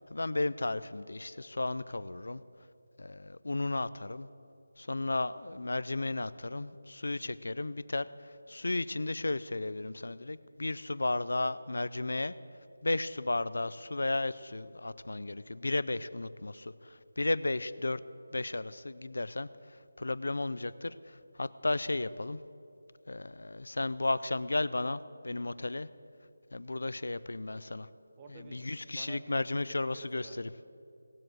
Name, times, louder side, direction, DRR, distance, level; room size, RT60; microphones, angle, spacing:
voice 1, 0.0-2.4 3.0-4.3 4.8-12.3 12.8-18.0 18.3-19.5 20.0-22.4 23.1-25.9 26.5-27.9 28.5-30.5, left 2 dB, 75° left, 16 dB, 0.5 m, -34 dB
voice 2, 28.2-30.7, right 3 dB, 15° right, 3 dB, 0.8 m, -51 dB
18.0 x 7.7 x 7.8 m, 2.7 s
figure-of-eight pair, 175°, 0 cm